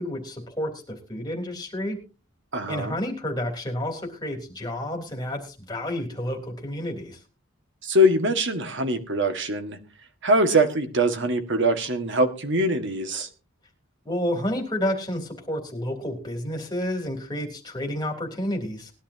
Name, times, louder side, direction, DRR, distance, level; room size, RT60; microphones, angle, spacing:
voice 1, 0.0-2.0 2.7-7.2 14.1-18.9, left 1 dB, 20° left, 2 dB, 3.4 m, -30 dB
voice 2, 2.5-3.0 7.8-9.8 10.2-13.3, equal, 55° right, 7 dB, 1.8 m, -23 dB
20.0 x 11.5 x 2.8 m, 0.34 s
head